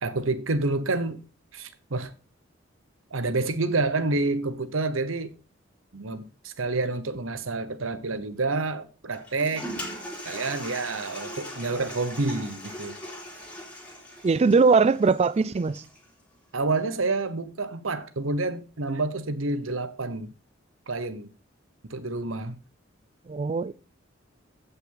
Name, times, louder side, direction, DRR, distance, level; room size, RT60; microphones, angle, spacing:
voice 1, 0.0-1.2 1.5-2.1 3.1-5.3 5.9-9.7 10.2-13.0 16.5-20.3 20.9-21.3 21.9-22.6, right 3 dB, 85° right, 1.0 m, -28 dB
Toilet flush, 9.1-16.1, equal, 5° left, 3.0 m, -40 dB
voice 2, 14.2-15.8 23.3-23.7, right 4 dB, 35° right, 0.4 m, -21 dB
15.5 x 5.7 x 3.9 m
head